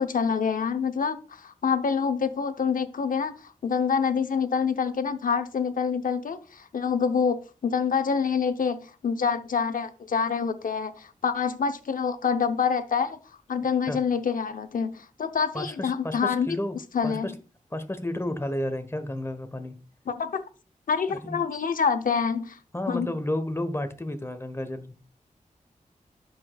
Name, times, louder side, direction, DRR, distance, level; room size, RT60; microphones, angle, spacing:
voice 1, 0.0-3.3 3.6-7.4 7.6-13.2 13.5-16.6 16.9-17.4 20.1-20.4 20.9-22.6 22.9-23.1, left 6 dB, 80° left, 0.7 m, -26 dB
voice 2, 15.5-16.7 17.0-17.3 17.7-19.7 21.1-21.4 22.7-25.0, left 1 dB, 20° left, 1.2 m, -31 dB
11.5 x 5.1 x 2.3 m
wide cardioid pair, 70°, 14 cm